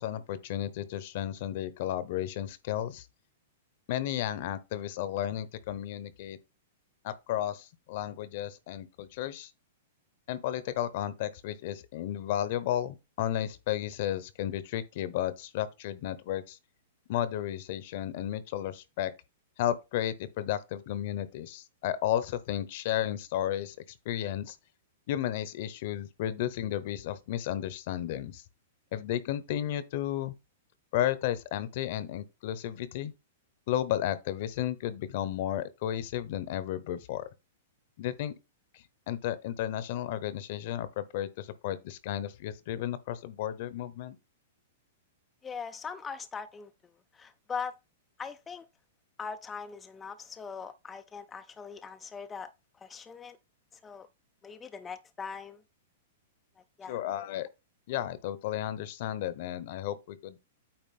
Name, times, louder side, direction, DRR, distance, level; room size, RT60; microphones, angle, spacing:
voice 1, 0.0-3.0 3.9-6.4 7.0-9.5 10.3-16.6 17.1-19.1 19.6-23.8 24.0-24.6 25.1-28.4 28.9-30.3 30.9-33.1 33.7-37.3 38.0-38.3 39.1-44.2 56.9-57.5 57.9-60.4, left 12 dB, 55° left, 1.0 m, -33 dB
voice 2, 45.4-46.7 47.1-47.7 48.2-48.7 49.2-52.5 52.8-53.4 53.8-54.1 54.4-55.6 56.8-57.0, left 5 dB, 15° left, 0.5 m, -40 dB
8.9 x 3.0 x 5.5 m
hypercardioid pair, 135°, 0 cm